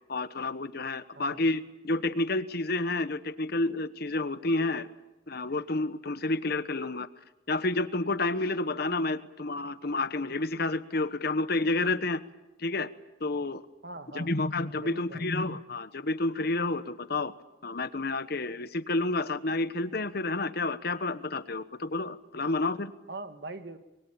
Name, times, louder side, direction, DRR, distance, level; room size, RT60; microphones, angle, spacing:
voice 1, 0.1-4.9 5.3-7.1 7.5-12.2 12.6-12.9 13.2-13.6 14.1-17.3 17.6-22.9, left 2 dB, 55° left, 12 dB, 1.1 m, -30 dB
voice 2, 13.8-14.3 14.8-15.3 23.1-23.8, right 2 dB, 60° right, 8 dB, 1.8 m, -41 dB
26.0 x 22.5 x 8.8 m, 0.99 s
head